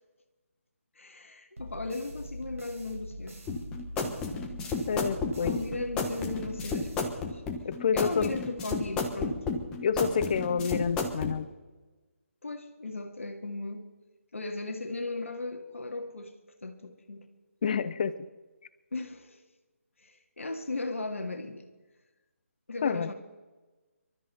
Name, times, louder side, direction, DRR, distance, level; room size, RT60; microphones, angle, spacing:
voice 1, 1.0-3.4 5.4-7.4 7.9-9.4 12.4-13.9 14.3-16.3 16.6-17.3 18.9-19.4 20.0-21.7 22.7-23.1, left 2 dB, 65° left, 1.9 m, -37 dB
sound 1, 1.6-7.7, equal, 70° right, 4.8 m, -43 dB
sound 2, 3.5-11.3, left 4 dB, 10° left, 1.3 m, -32 dB
voice 2, 4.9-5.5 7.6-8.3 9.8-11.5 17.6-18.3 22.8-23.1, left 6 dB, 35° left, 0.7 m, -28 dB
26.0 x 13.0 x 4.3 m
figure-of-eight pair, 145°, 8 cm